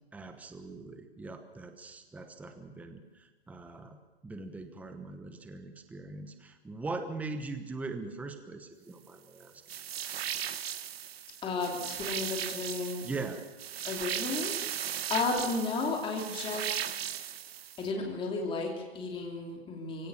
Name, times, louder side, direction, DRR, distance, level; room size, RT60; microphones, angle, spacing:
voice 1, 0.1-4.0 4.2-9.5 13.0-13.4, right 3 dB, 5° right, 8 dB, 1.0 m, -41 dB
sound 1, 9.7-17.9, right 10 dB, 65° right, 1.2 m, -37 dB
voice 2, 11.4-13.4 13.8-14.5 15.1-16.8 17.8-20.1, left 3 dB, 15° left, 0 dB, 3.1 m, -33 dB
24.5 x 16.5 x 7.2 m, 1.2 s
hypercardioid pair, 135°, 33 cm